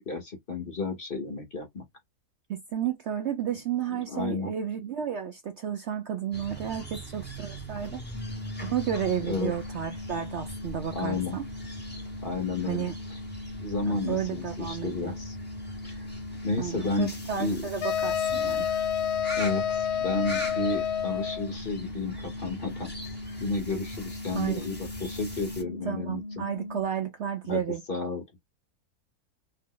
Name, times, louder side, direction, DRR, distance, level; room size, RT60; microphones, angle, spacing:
voice 1, 0.0-1.8 3.9-4.5 9.3-9.5 10.9-11.4 12.2-13.2 13.6-15.4 15.8-16.1 16.4-17.6 19.4-22.9 23.4-26.2 27.5-27.6 27.9-28.4, left 3 dB, 45° left, 0.9 m, -32 dB
voice 2, 2.5-8.0 8.6-11.4 12.7-12.9 13.8-15.1 16.6-18.7 24.3-24.7 25.9-27.8, right 9 dB, 65° right, 0.7 m, -32 dB
sound 1, 6.3-25.6, equal, 10° left, 0.7 m, -42 dB
sound 2, 8.1-26.8, left 1 dB, 65° left, 0.6 m, -40 dB
sound 3, 17.8-21.5, left 9 dB, 80° left, 1.1 m, -28 dB
2.8 x 2.0 x 3.7 m
omnidirectional pair, 1.6 m